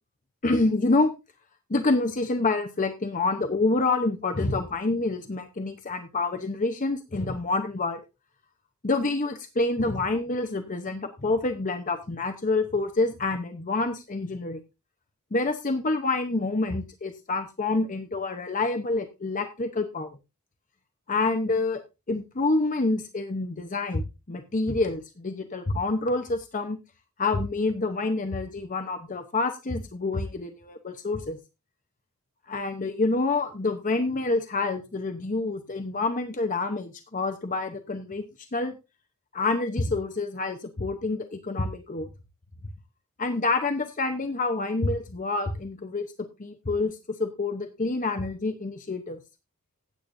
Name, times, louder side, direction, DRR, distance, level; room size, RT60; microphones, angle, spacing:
voice 1, 0.4-1.1 1.7-8.0 8.8-14.6 15.3-20.1 21.1-21.8 22.1-26.8 27.2-31.4 32.5-38.2 38.5-38.8 39.3-42.1 43.2-49.2, left 3 dB, 35° left, 6 dB, 0.9 m, -27 dB
15.5 x 8.5 x 2.6 m, 0.27 s
head